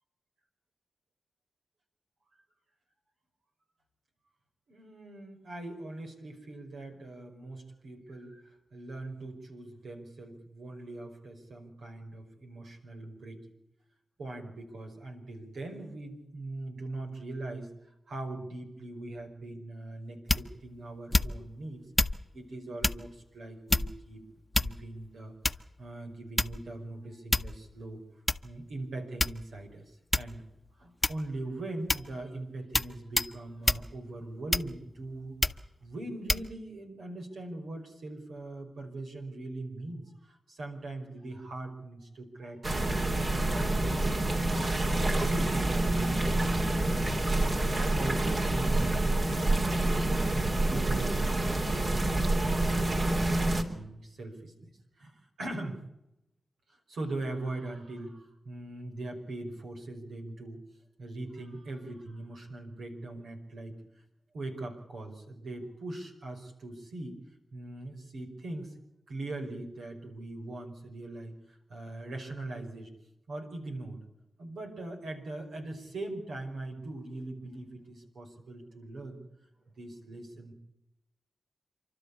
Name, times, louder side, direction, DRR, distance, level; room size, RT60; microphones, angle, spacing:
voice 1, 4.7-13.4 14.2-17.7 18.1-21.8 22.3-24.2 24.6-25.3 25.8-28.0 28.4-30.4 30.8-44.8 45.2-47.4 47.8-49.0 50.3-54.7 55.0-55.8 56.7-60.6 61.0-63.8 64.3-67.2 67.5-68.8 69.1-72.9 73.3-74.0 74.4-79.2 79.8-80.5, right 2 dB, 80° right, 2 dB, 5.3 m, -41 dB
Golpe de Palo, 20.3-20.6 21.1-21.5 22.0-22.2 22.8-23.1 23.7-24.1 24.5-25.0 25.4-25.8 26.4-26.7 27.3-27.6 28.3-28.4 29.2-29.6 30.1-30.4 31.0-31.4 31.9-32.1 32.7-32.9 33.2-33.3 33.7-33.9 34.5-34.9 35.4-35.7 36.3-36.5, left 2 dB, 25° left, 1.0 m, -27 dB
sound 1, 42.6-53.6, right 2 dB, 50° right, 3.5 m, -27 dB
28.5 x 12.5 x 8.5 m, 0.87 s
cardioid pair, 45°, 0 cm